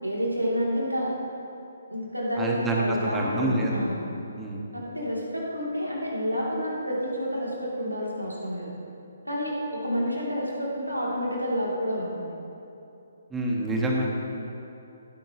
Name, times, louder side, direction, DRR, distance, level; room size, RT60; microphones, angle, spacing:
voice 1, 0.0-1.1 1.9-4.0 4.7-8.7 9.2-12.3, equal, 85° right, -4 dB, 2.9 m, -29 dB
voice 2, 2.4-3.8 4.4-4.6 13.3-14.1, right 1 dB, 10° right, -2 dB, 1.5 m, -27 dB
16.5 x 10.5 x 3.0 m, 2.8 s
figure-of-eight pair, 135°, 0 cm